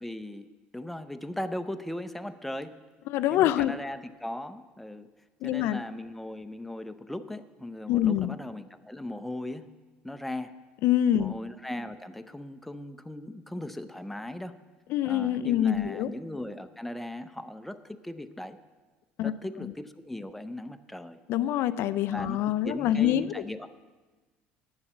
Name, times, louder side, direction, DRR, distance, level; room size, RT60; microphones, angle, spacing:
voice 1, 0.0-0.5 0.7-2.8 3.3-5.1 5.4-9.7 10.0-10.6 11.2-14.6 15.1-18.6 19.2-21.2 22.1-23.8, left 1 dB, 5° left, 9 dB, 0.5 m, -38 dB
voice 2, 3.1-3.7 5.4-5.8 7.9-8.4 10.8-11.4 14.9-16.1 19.2-19.7 21.3-23.4, left 11 dB, 65° left, 14 dB, 0.3 m, -26 dB
9.7 x 7.1 x 7.2 m, 1.3 s
supercardioid pair, 105°, 4 cm